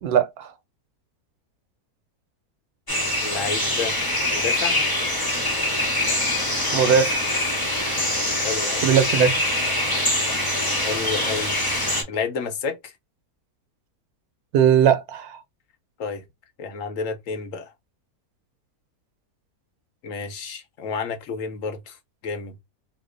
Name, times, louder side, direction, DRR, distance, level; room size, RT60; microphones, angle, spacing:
voice 1, 0.0-0.5 6.7-7.2 8.8-9.3 14.5-15.4, right 8 dB, 85° right, 1.1 m, -19 dB
sound 1, 2.9-12.0, left 1 dB, 20° left, 0.7 m, -24 dB
voice 2, 3.2-4.0 4.3-4.8 8.4-8.8 10.8-11.6 12.1-12.9 16.0-16.2 16.6-17.7 20.0-22.0 22.2-22.6, left 5 dB, 65° left, 1.0 m, -30 dB
2.8 x 2.1 x 3.6 m
omnidirectional pair, 1.6 m